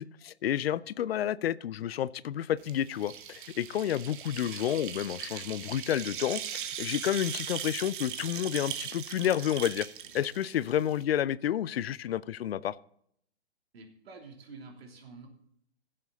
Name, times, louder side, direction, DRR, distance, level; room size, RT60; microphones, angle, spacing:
voice 1, 0.0-9.9 10.1-12.8, left 10 dB, 65° left, 0.6 m, -30 dB
sound 1, 2.6-11.0, right 9 dB, 50° right, 1.2 m, -39 dB
voice 2, 13.7-15.3, right 4 dB, 65° right, 3.3 m, -48 dB
16.0 x 7.6 x 4.1 m
hypercardioid pair, 135°, 33 cm